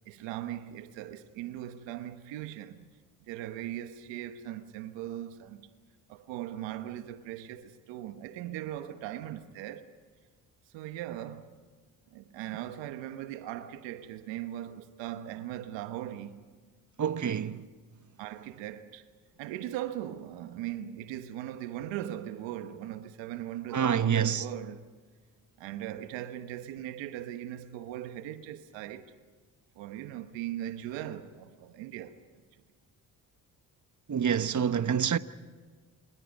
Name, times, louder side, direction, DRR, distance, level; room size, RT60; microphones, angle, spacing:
voice 1, 0.1-2.9 3.3-5.7 6.1-9.9 10.7-11.5 12.1-16.5 17.2-17.6 18.2-19.0 19.4-24.9 25.6-29.1 29.8-32.2, right 12 dB, 90° right, 1.3 m, -39 dB
voice 2, 17.0-17.6 23.7-24.4 34.1-35.2, right 8 dB, 45° right, 1.2 m, -27 dB
29.5 x 27.0 x 5.4 m
supercardioid pair, 50°, 43 cm